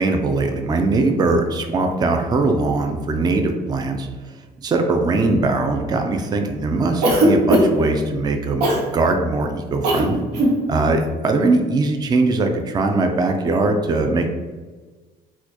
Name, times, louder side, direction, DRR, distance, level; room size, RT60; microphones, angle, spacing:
voice 1, 0.0-4.1 4.6-8.6 8.9-10.3 10.7-14.3, right 3 dB, 25° right, 4 dB, 0.4 m, -20 dB
Cough, 7.0-7.9 8.6-8.9 9.8-10.1 10.3-10.6, equal, 85° right, 0.7 m, -17 dB
4.2 x 2.2 x 2.9 m, 1.4 s
cardioid pair, 110°, 17 cm